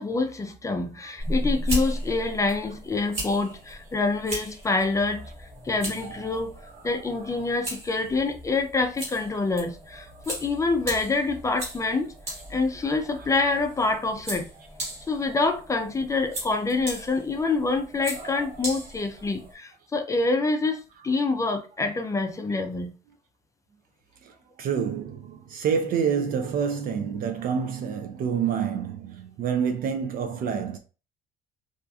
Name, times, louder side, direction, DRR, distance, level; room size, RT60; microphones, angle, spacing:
voice 1, 0.0-5.3 5.6-6.6 6.8-12.1 12.5-14.5 15.1-22.9, left 3 dB, 20° left, 0.4 m, -26 dB
sound 1, 1.2-19.5, right 1 dB, 40° right, 1.3 m, -36 dB
voice 2, 6.0-7.4 12.8-13.6 17.4-17.6 18.1-18.6 24.6-30.8, right 7 dB, 55° right, 0.4 m, -29 dB
2.6 x 2.4 x 2.3 m
cardioid pair, 110°, 17 cm